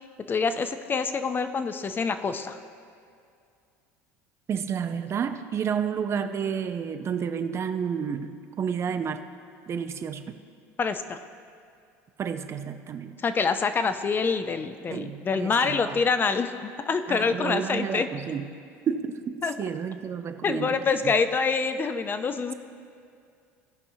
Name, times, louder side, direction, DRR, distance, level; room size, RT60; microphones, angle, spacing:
voice 1, 0.3-2.6 10.8-11.2 13.2-18.1 19.4-19.5 20.4-22.5, left 5 dB, 30° left, 10 dB, 0.6 m, -26 dB
voice 2, 4.5-9.2 9.7-10.3 12.2-13.2 14.9-16.0 17.1-18.5 18.9-21.1, right 7 dB, 40° right, 9 dB, 0.6 m, -31 dB
16.5 x 5.5 x 2.8 m, 2.4 s
hypercardioid pair, 85°, 7 cm